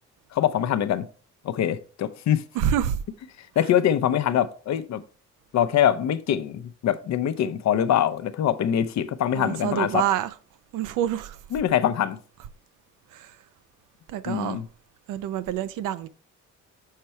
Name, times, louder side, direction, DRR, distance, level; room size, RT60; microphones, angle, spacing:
voice 1, 0.3-1.1 1.4-2.4 3.6-5.0 5.5-10.0 11.5-12.2 14.3-14.7, left 10 dB, 65° left, 0.7 m, -23 dB
voice 2, 2.6-3.0 9.3-10.3 10.7-11.4 13.1-13.3 14.1-14.6 15.1-16.1, right 10 dB, 85° right, 0.6 m, -27 dB
6.6 x 4.6 x 4.3 m
cardioid pair, 90°, 30 cm